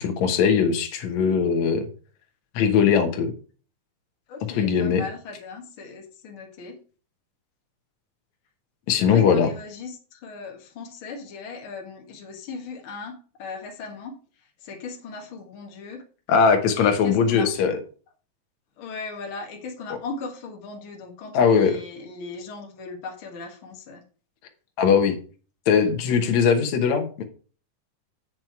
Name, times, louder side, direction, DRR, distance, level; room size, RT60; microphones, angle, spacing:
voice 1, 0.0-1.9 2.6-3.3 4.6-5.0 8.9-9.5 16.3-17.8 21.3-21.7 24.8-25.2 25.7-27.2, left 6 dB, 65° left, 5 dB, 2.4 m, -20 dB
voice 2, 4.3-6.8 9.0-14.1 14.6-16.0 16.7-17.5 18.8-24.0, left 4 dB, 50° left, 1 dB, 2.0 m, -38 dB
7.7 x 6.3 x 4.6 m, 0.38 s
omnidirectional pair, 3.6 m